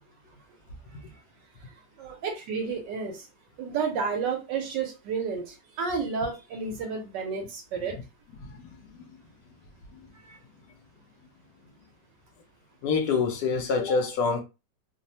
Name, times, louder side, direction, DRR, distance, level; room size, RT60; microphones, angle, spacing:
voice 1, 2.0-3.3 3.6-8.0 10.2-10.4, right 5 dB, 75° right, 1.2 m, -31 dB
voice 2, 8.4-9.0 12.8-14.4, left 4 dB, 70° left, 1.0 m, -27 dB
3.2 x 2.0 x 2.7 m
omnidirectional pair, 2.0 m